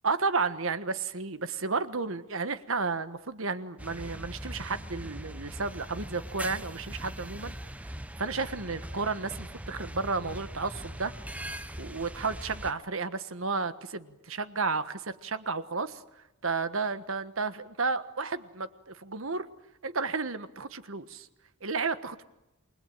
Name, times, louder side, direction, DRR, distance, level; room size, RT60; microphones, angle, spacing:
voice 1, 0.0-7.5 8.2-11.1 11.8-16.0 16.4-19.5 19.8-21.3 21.6-22.2, right 4 dB, 65° right, 12 dB, 1.4 m, -32 dB
sound 1, 3.8-12.7, right 1 dB, 5° right, 0.9 m, -41 dB
28.5 x 21.0 x 9.0 m, 0.93 s
head